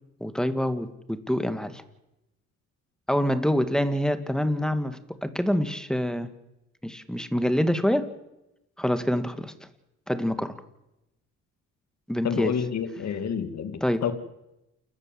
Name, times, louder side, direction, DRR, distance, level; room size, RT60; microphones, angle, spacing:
voice 1, 0.2-1.8 3.1-6.3 6.8-8.1 8.8-9.5 10.1-10.6 12.1-12.5 13.8-14.1, equal, ahead, 11 dB, 2.0 m, -26 dB
voice 2, 12.2-14.1, left 7 dB, 60° left, 10 dB, 2.5 m, -29 dB
28.5 x 13.5 x 7.7 m, 0.91 s
cardioid pair, 90°, 30 cm